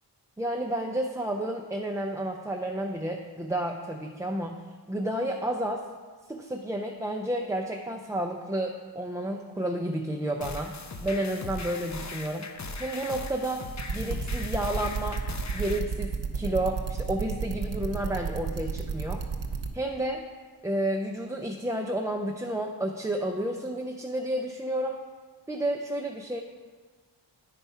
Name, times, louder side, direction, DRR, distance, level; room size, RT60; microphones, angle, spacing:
voice 1, 0.4-5.8 6.3-10.8 11.0-12.5 12.8-13.6 13.9-15.2 15.5-19.2 19.7-20.2 20.6-25.0 25.5-26.4, right 1 dB, 10° right, 1 dB, 0.5 m, -31 dB
sound 1, 10.4-15.8, left 3 dB, 40° left, 0.6 m, -39 dB
sound 2, 13.8-19.7, right 5 dB, 75° right, 0.8 m, -31 dB
9.1 x 4.6 x 5.5 m, 1.5 s
wide cardioid pair, 70°, 43 cm